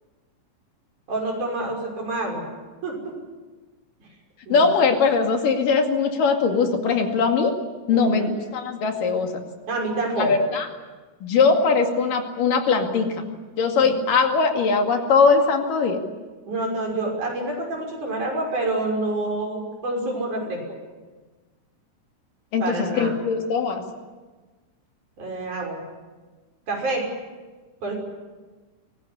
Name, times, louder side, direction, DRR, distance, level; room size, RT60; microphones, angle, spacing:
voice 1, 1.1-2.4 2.8-3.1 4.5-4.7 7.9-8.3 9.7-10.3 13.8-13.9 16.5-20.6 22.6-23.2 25.2-25.8 26.7-27.1 27.8-28.0, right 2 dB, 65° right, 0 dB, 7.5 m, -27 dB
voice 2, 4.5-7.5 7.9-9.3 10.2-10.7 11.2-13.2 13.6-16.0 22.5-23.8, left 5 dB, 85° left, 4 dB, 4.0 m, -20 dB
23.5 x 18.5 x 9.8 m, 1.3 s
omnidirectional pair, 3.7 m